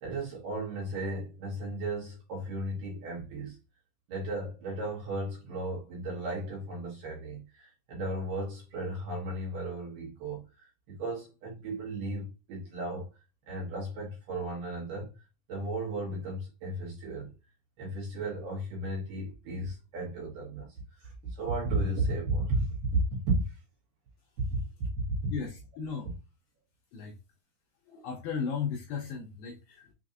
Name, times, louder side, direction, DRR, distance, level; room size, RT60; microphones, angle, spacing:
voice 1, 0.0-3.6 4.1-13.1 13.5-15.1 15.5-17.3 17.8-23.0 23.3-23.6 24.5-24.6 25.2-25.3, right 2 dB, 65° right, 2.5 m, -34 dB
voice 2, 25.3-26.1 26.9-27.2 27.9-29.9, left 6 dB, 80° left, 2.2 m, -36 dB
6.4 x 2.5 x 2.5 m
omnidirectional pair, 4.9 m